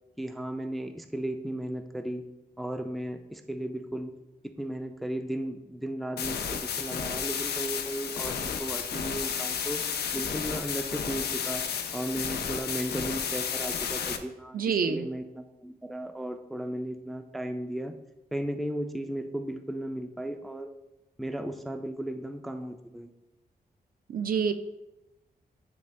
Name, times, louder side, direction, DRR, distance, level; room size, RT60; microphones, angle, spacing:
voice 1, 0.2-2.2 2.6-4.2 4.4-9.8 10.1-11.6 11.9-17.9 18.3-20.7 21.2-23.1, right 1 dB, ahead, 7 dB, 0.3 m, -35 dB
sound 1, 6.2-14.2, left 7 dB, 85° left, 0.5 m, -32 dB
voice 2, 14.5-15.1 24.1-24.5, right 6 dB, 60° right, 8 dB, 0.5 m, -27 dB
9.3 x 3.3 x 3.2 m, 0.97 s
wide cardioid pair, 145°, 16 cm